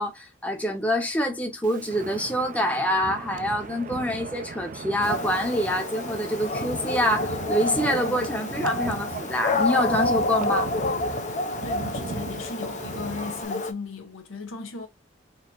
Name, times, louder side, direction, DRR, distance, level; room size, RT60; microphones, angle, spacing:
voice 1, 0.0-10.7, equal, 5° left, 0.7 m, -26 dB
Wind, 1.6-13.5, right 4 dB, 40° right, 0.4 m, -37 dB
Dog, 5.0-13.7, left 2 dB, 35° left, 0.5 m, -29 dB
voice 2, 11.6-14.9, left 4 dB, 80° left, 1.0 m, -36 dB
4.0 x 2.7 x 2.4 m
head